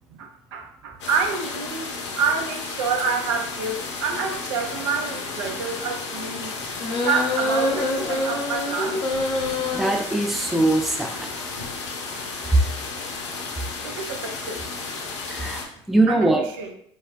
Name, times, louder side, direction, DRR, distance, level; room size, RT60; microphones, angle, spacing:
voice 1, 0.1-6.5 7.0-9.1 13.8-14.6 16.1-16.7, right 5 dB, 70° right, 3 dB, 0.5 m, -28 dB
sound 1, 1.0-15.7, left 4 dB, 80° left, 0.5 m, -33 dB
sound 2, 6.8-9.8, left 2 dB, 30° left, 0.8 m, -25 dB
voice 2, 9.7-11.3 15.3-15.6 15.9-16.4, right 2 dB, ahead, 3 dB, 0.4 m, -21 dB
3.3 x 2.2 x 2.4 m, 0.69 s
hypercardioid pair, 70°, 15 cm